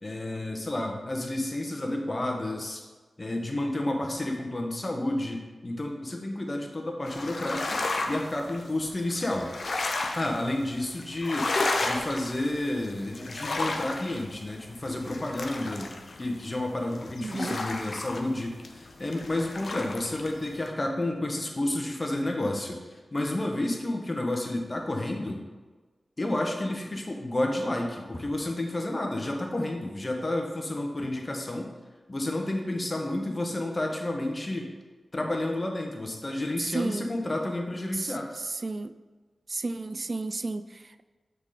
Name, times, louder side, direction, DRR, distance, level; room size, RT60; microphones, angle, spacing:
voice 1, 0.0-2.8 3.2-9.5 10.1-11.5 11.8-15.9 16.2-25.4 26.2-31.7 32.1-34.7 35.1-38.3, left 1 dB, 35° left, 2 dB, 1.1 m, -31 dB
sound 1, 7.0-20.7, left 2 dB, 70° left, 0.6 m, -33 dB
voice 2, 17.2-17.6 36.6-37.1 37.9-39.0 39.5-41.0, right 3 dB, 50° right, 11 dB, 0.3 m, -33 dB
6.5 x 3.9 x 4.9 m, 1.3 s
cardioid pair, 55°, 0 cm